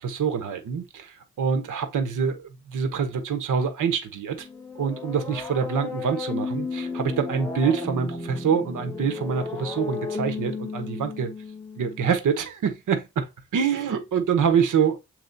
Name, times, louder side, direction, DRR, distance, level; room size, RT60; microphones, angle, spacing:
voice 1, 0.0-2.4 2.7-4.5 4.8-11.3 11.8-13.3 13.5-15.0, right 6 dB, 90° right, 1.2 m, -25 dB
sound 1, 4.4-12.2, left 4 dB, 10° left, 1.1 m, -34 dB
7.8 x 3.1 x 4.0 m
wide cardioid pair, 165°, 30 cm